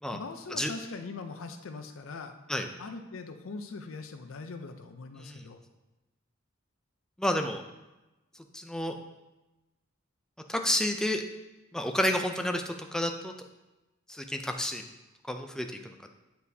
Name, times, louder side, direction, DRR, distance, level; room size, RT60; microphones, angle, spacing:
voice 1, 0.1-2.3 2.8-5.6, left 3 dB, 75° left, 7 dB, 0.5 m, -41 dB
voice 2, 7.2-7.6 8.5-8.9 10.5-11.2 11.7-13.3 14.1-14.8 15.2-16.1, left 1 dB, 5° left, 5 dB, 0.4 m, -30 dB
9.4 x 4.1 x 2.7 m, 1.0 s
head